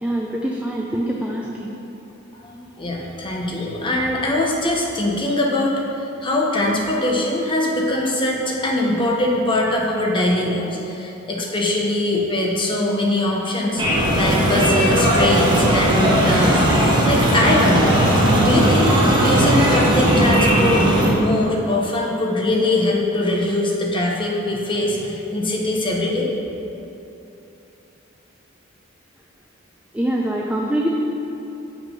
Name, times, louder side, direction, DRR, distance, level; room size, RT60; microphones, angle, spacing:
voice 1, 0.0-1.7 29.9-30.9, right 1 dB, 5° right, -2 dB, 0.5 m, -24 dB
voice 2, 2.4-5.8 6.2-16.6 17.0-18.0 18.4-18.9 19.2-26.3, left 1 dB, 25° left, -2 dB, 1.1 m, -22 dB
sound 1, 13.8-21.1, equal, 20° right, 1.4 m, -17 dB
7.2 x 6.1 x 5.4 m, 3.0 s
head